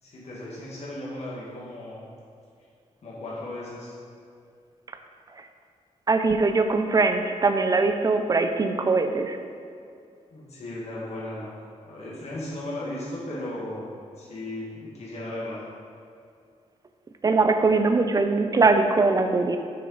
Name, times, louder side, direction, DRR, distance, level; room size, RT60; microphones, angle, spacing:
voice 1, 0.0-2.0 3.0-3.9 10.3-11.6 11.8-13.9 14.2-15.7, left 1 dB, 60° left, -7 dB, 1.8 m, -36 dB
voice 2, 6.1-9.4 17.2-19.6, right 3 dB, 30° right, 7 dB, 0.5 m, -21 dB
6.9 x 6.4 x 4.0 m, 2.4 s
wide cardioid pair, 145°, 12 cm